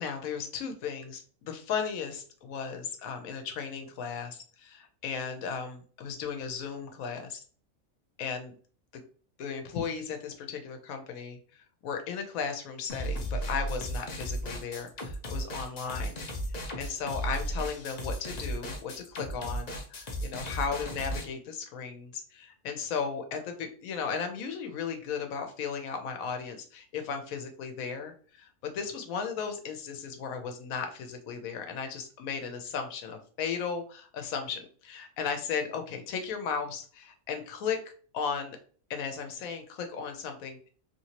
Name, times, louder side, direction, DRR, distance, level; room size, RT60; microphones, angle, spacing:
voice 1, 0.0-7.4 8.2-8.5 9.4-11.4 11.8-16.2 16.5-37.8 38.1-38.6 38.9-40.7, left 6 dB, 80° left, 5 dB, 1.1 m, -35 dB
sound 1, 12.9-21.2, equal, 45° left, 0.5 m, -35 dB
3.0 x 2.9 x 2.8 m, 0.43 s
omnidirectional pair, 1.4 m